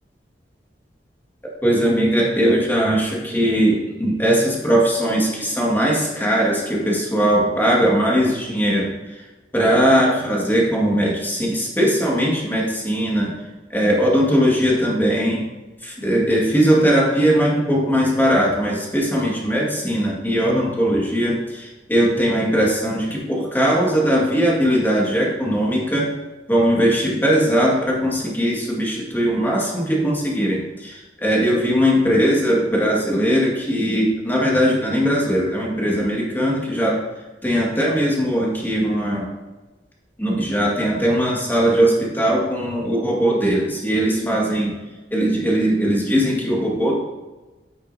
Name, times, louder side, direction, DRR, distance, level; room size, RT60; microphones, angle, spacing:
voice 1, 1.4-9.2 9.5-13.3 13.7-15.5 15.8-26.1 26.5-37.0 37.4-39.3 40.2-44.8 45.1-47.0, equal, 10° left, -3 dB, 1.9 m, -19 dB
9.3 x 8.4 x 2.8 m, 1.1 s
head